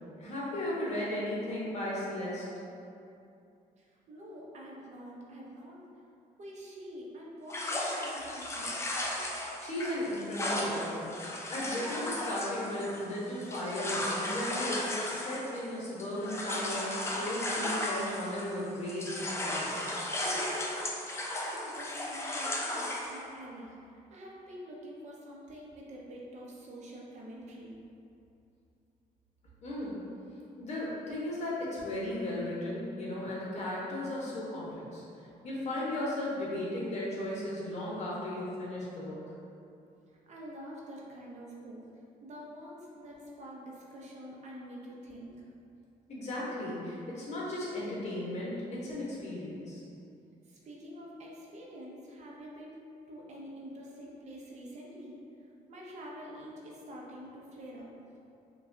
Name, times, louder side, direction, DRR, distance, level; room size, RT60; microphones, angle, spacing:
voice 1, 0.2-2.4 9.6-11.1 11.5-19.9 29.6-30.0 30.6-35.0 35.4-39.2 46.1-49.8, left 1 dB, 50° left, -6 dB, 1.0 m, -36 dB
voice 2, 3.8-5.8 6.4-9.0 21.4-27.8 40.1-45.5 50.4-52.8 53.1-55.2 55.7-57.9, equal, 50° right, -3 dB, 0.7 m, -47 dB
sound 1, 7.5-18.6 18.9-23.2, left 1 dB, 20° left, 0.4 m, -35 dB
4.8 x 2.3 x 2.6 m, 2.6 s
cardioid pair, 125°, 15 cm